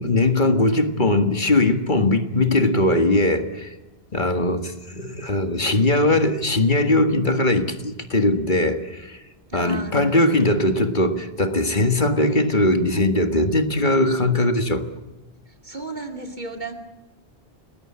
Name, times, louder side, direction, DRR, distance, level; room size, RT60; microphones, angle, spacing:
voice 1, 0.0-3.7 4.1-9.2 9.5-14.8, left 2 dB, 50° left, 1.9 m, -20 dB
voice 2, 9.5-10.4 15.5-16.7, right 3 dB, 45° right, 2.8 m, -34 dB
29.5 x 20.5 x 8.8 m
omnidirectional pair, 1.1 m